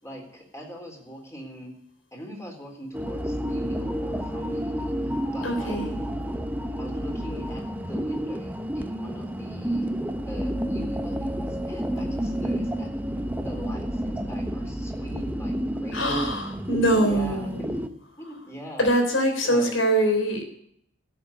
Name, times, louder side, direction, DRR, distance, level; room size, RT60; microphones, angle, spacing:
voice 1, 0.0-1.7 2.1-5.8 6.8-7.6 7.9-9.9 10.3-12.9 13.4-15.5 15.8-16.0 17.0-17.8 18.2-18.9 19.4-19.8, equal, 15° left, 1 dB, 3.9 m, -41 dB
sound 1, 2.9-17.9, equal, 10° right, 0.8 m, -30 dB
voice 2, 5.4-6.0 15.9-17.7 18.8-20.4, right 1 dB, 80° left, 4 dB, 3.8 m, -23 dB
13.0 x 7.9 x 9.9 m, 0.71 s
head